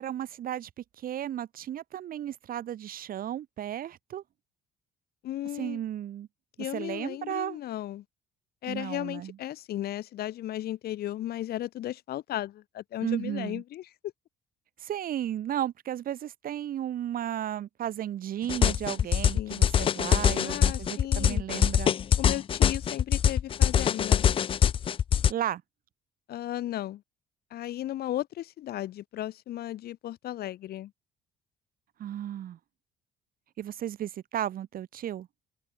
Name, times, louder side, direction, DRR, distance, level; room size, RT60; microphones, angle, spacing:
voice 1, 0.0-4.2 5.5-6.3 6.6-7.6 8.7-9.4 13.0-13.6 14.8-21.9 25.3-25.6 32.0-32.6 33.6-35.3, right 11 dB, 60° right, 3.5 m, -34 dB
voice 2, 5.2-5.8 6.6-8.0 8.6-13.8 19.3-19.6 20.4-21.4 22.2-24.3 26.3-27.0 27.5-30.9, left 13 dB, 65° left, 2.7 m, -35 dB
sound 1, 18.5-25.3, left 8 dB, 30° left, 0.3 m, -23 dB
open air
cardioid pair, 110°, 17 cm